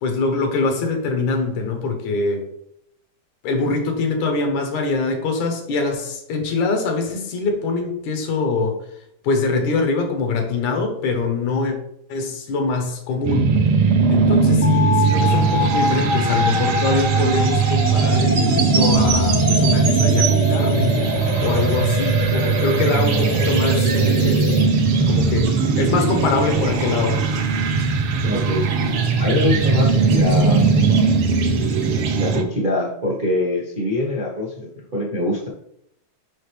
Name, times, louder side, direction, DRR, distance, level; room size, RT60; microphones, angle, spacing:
voice 1, 0.0-2.4 3.4-8.8 9.2-11.8 12.1-13.5 14.1-21.2 21.4-24.5 25.1-27.2, left 4 dB, 80° left, 4 dB, 2.5 m, -23 dB
sound 1, 13.2-32.4, right 5 dB, 80° right, 1.3 m, -19 dB
sound 2, 14.6-24.6, left 3 dB, 60° left, 1.1 m, -26 dB
sound 3, 15.0-32.4, right 5 dB, 55° right, 1.6 m, -31 dB
voice 2, 28.2-28.7 29.2-30.8 32.1-35.5, left 2 dB, 40° right, -3 dB, 0.7 m, -23 dB
6.3 x 5.6 x 3.3 m, 0.75 s
omnidirectional pair, 3.3 m